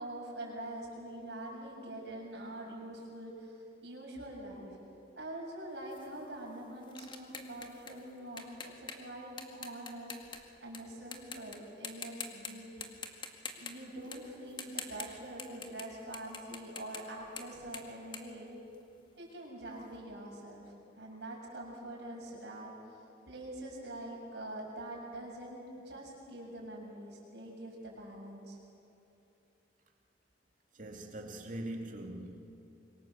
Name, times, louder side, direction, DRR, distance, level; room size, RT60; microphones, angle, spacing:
voice 1, 0.0-3.6 3.8-4.8 5.2-8.5 8.8-13.0 13.6-18.5 19.2-22.7 23.3-28.6, right 1 dB, 65° right, 6.9 m, -45 dB
sound 1, 5.9-10.8 11.1-11.6 11.8-12.5 12.8-15.9 16.1-19.1, left 5 dB, 25° left, 2.0 m, -45 dB
voice 2, 30.7-32.4, right 1 dB, 45° right, 2.7 m, -42 dB
26.5 x 23.5 x 7.4 m
head